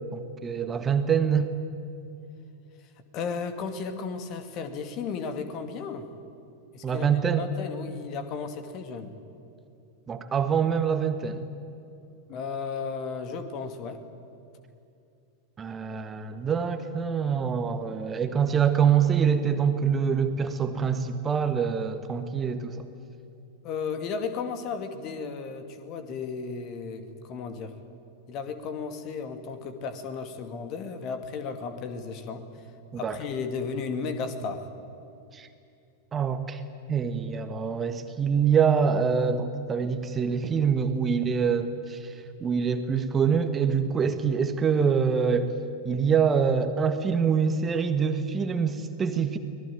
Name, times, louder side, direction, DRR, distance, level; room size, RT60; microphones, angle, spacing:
voice 1, 0.0-1.5 6.8-7.5 10.1-11.4 15.6-22.8 33.0-33.2 35.3-35.5 36.1-36.6 36.9-45.5 45.8-49.4, right 6 dB, 20° right, 9 dB, 1.5 m, -25 dB
voice 2, 3.1-6.1 6.7-9.1 12.3-14.0 23.6-27.7 28.3-32.4 33.0-34.7, left 5 dB, 40° left, 9 dB, 2.3 m, -34 dB
25.0 x 19.5 x 9.2 m, 2.6 s
figure-of-eight pair, 90°, 0 cm